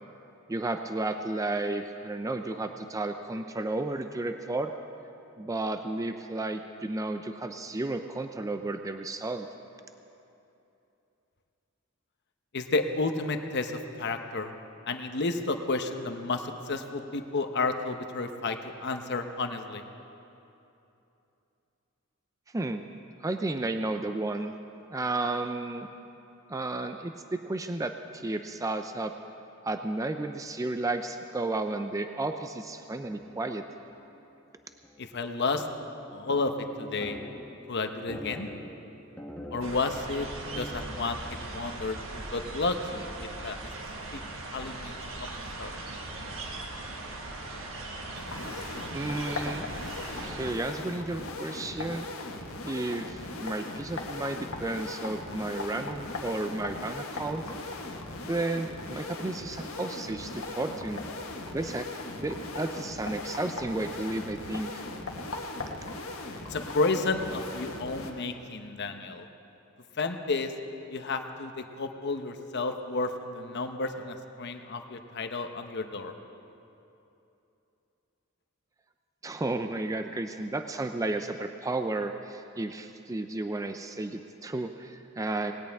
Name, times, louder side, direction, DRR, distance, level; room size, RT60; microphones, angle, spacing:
voice 1, 0.5-4.7 5.4-9.5 22.5-22.9 23.2-24.5 24.9-25.9 26.5-29.1 29.6-33.6 48.9-49.7 50.2-52.1 52.6-57.4 58.3-61.0 61.5-61.9 62.2-64.8 79.2-85.5, right 2 dB, 15° right, 7 dB, 0.4 m, -32 dB
voice 2, 12.5-14.5 14.9-19.8 35.0-35.7 36.1-36.5 36.8-37.2 37.7-38.5 39.5-40.3 40.5-43.6 44.1-44.2 44.5-45.0 45.6-45.8 66.5-69.2 70.0-70.5 70.9-76.1, left 3 dB, 55° left, 6 dB, 0.9 m, -31 dB
sound 1, 33.0-34.3 34.5-34.6 34.8-35.3 35.6-43.0 43.3-43.4 44.6-44.9 45.4-47.4, equal, 10° left, 1.1 m, -45 dB
sound 2, 39.6-50.5, right 2 dB, 70° right, 1.5 m, -39 dB
sound 3, 48.1-68.1, left 2 dB, 75° left, 1.5 m, -39 dB
19.0 x 17.5 x 3.5 m, 2.8 s
head